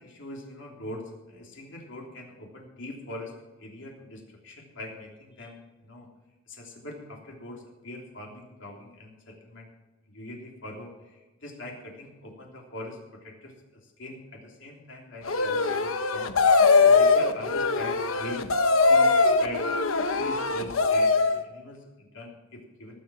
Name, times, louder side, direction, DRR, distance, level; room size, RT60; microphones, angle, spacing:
voice 1, 0.0-3.3 3.6-6.1 6.5-9.7 10.1-13.5 13.8-16.3 16.8-18.4 18.8-19.7 20.1-23.0, left 1 dB, 60° left, 0 dB, 3.3 m, -42 dB
sound 1, 15.3-21.4, left 4 dB, 80° left, 1.0 m, -21 dB
18.5 x 7.4 x 6.3 m, 1.1 s
head